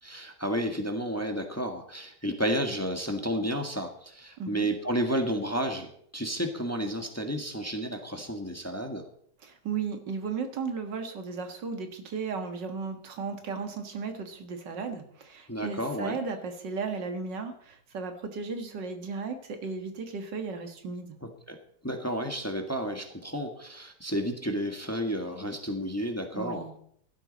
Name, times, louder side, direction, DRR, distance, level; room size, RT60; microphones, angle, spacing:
voice 1, 0.0-5.9 6.1-9.0 15.5-16.2 21.2-21.6 21.8-26.7, equal, 10° left, 4 dB, 1.5 m, -31 dB
voice 2, 4.4-4.7 9.4-21.2 26.3-26.7, right 5 dB, 85° right, 6 dB, 2.3 m, -35 dB
15.5 x 12.0 x 4.1 m, 0.65 s
omnidirectional pair, 1.9 m